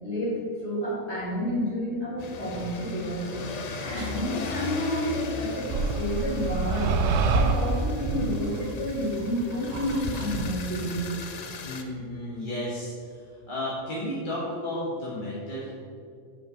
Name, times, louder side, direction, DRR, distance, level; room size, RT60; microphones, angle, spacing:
voice 1, 0.0-0.3 0.6-3.3 3.8-11.1, left 1 dB, 50° left, -6 dB, 2.5 m, -30 dB
sound 1, 2.2-11.8, left 3 dB, 85° left, 0.3 m, -37 dB
sound 2, 4.0-4.2 5.7-10.5, right 4 dB, 70° right, 0.9 m, -28 dB
voice 2, 11.6-12.9 13.5-15.7, left 1 dB, 35° left, -8 dB, 1.6 m, -32 dB
5.9 x 5.1 x 5.8 m, 2.2 s
omnidirectional pair, 1.4 m